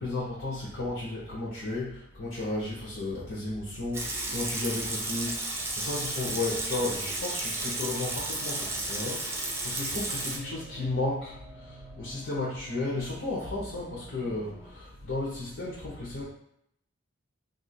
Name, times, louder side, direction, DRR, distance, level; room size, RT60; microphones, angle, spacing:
voice 1, 0.0-16.2, left 2 dB, 85° left, -7 dB, 0.9 m, -34 dB
Water tap faucet / Sink (filling or washing) / Liquid, 3.9-10.4, right 2 dB, 15° right, 0.4 m, -33 dB
sound 1, 6.7-14.7, right 2 dB, 55° right, 0.8 m, -51 dB
2.8 x 2.6 x 4.2 m, 0.75 s
head